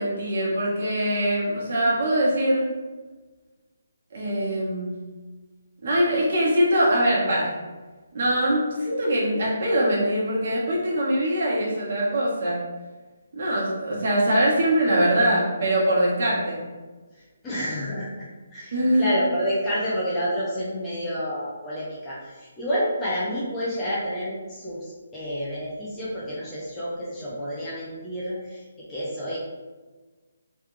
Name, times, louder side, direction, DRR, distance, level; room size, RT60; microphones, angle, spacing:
voice 1, 0.0-2.7 4.1-4.9 5.8-7.5 8.1-12.6 13.3-16.6 18.7-19.2, right 1 dB, 50° right, -5 dB, 1.4 m, -22 dB
voice 2, 17.4-18.3 18.5-18.7 19.0-28.6 28.9-29.4, equal, 10° left, -8 dB, 0.7 m, -29 dB
3.4 x 3.3 x 3.2 m, 1.3 s
hypercardioid pair, 170°, 0 cm